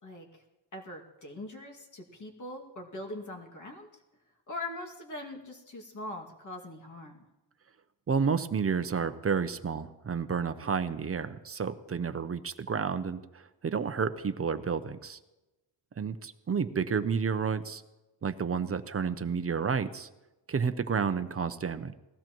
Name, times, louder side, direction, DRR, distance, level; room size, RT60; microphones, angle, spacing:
voice 1, 0.0-0.4 0.7-3.9 4.5-7.2, left 2 dB, 40° left, 1 dB, 2.2 m, -42 dB
voice 2, 8.1-15.2 16.0-17.8 18.2-20.1 20.5-22.0, right 6 dB, 30° right, 11 dB, 0.6 m, -31 dB
20.0 x 15.5 x 3.0 m, 1.0 s
wide cardioid pair, 150°, 44 cm